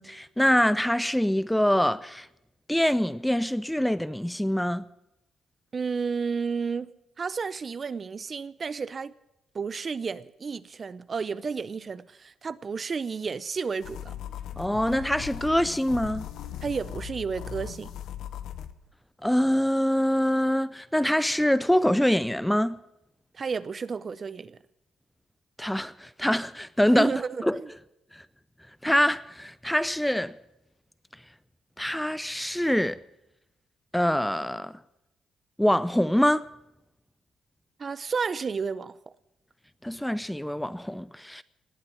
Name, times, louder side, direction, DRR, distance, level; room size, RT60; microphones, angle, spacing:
voice 1, 0.0-2.3 2.7-4.8 14.6-16.3 19.2-22.8 25.6-27.1 27.4-27.6 28.1-28.2 28.8-30.3 31.8-33.0 33.9-34.8 35.6-36.5 39.8-41.4, equal, 5° left, 0.5 m, -24 dB
voice 2, 5.7-6.9 7.2-9.1 9.5-14.1 16.6-18.0 23.3-24.6 26.9-27.7 37.8-39.0, right 5 dB, 40° right, 0.6 m, -32 dB
sound 1, 13.8-18.7, left 9 dB, 75° left, 1.0 m, -38 dB
19.0 x 7.8 x 9.1 m
cardioid pair, 90°, 0 cm